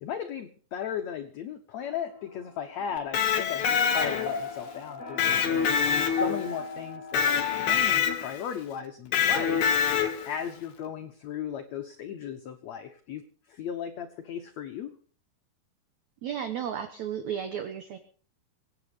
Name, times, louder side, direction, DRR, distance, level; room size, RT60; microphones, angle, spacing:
voice 1, 0.0-9.8 10.2-13.2 13.5-14.9, left 8 dB, 75° left, 6 dB, 1.6 m, -36 dB
sound 1, 1.8-7.8, left 2 dB, 40° left, 6.9 m, -39 dB
Electric guitar, 3.0-4.5 5.2-6.6 7.1-8.4 9.1-10.4, left 7 dB, 60° left, 2.4 m, -25 dB
voice 2, 16.2-18.0, right 8 dB, 65° right, 8 dB, 2.0 m, -33 dB
23.5 x 9.0 x 5.0 m, 0.43 s
omnidirectional pair, 4.6 m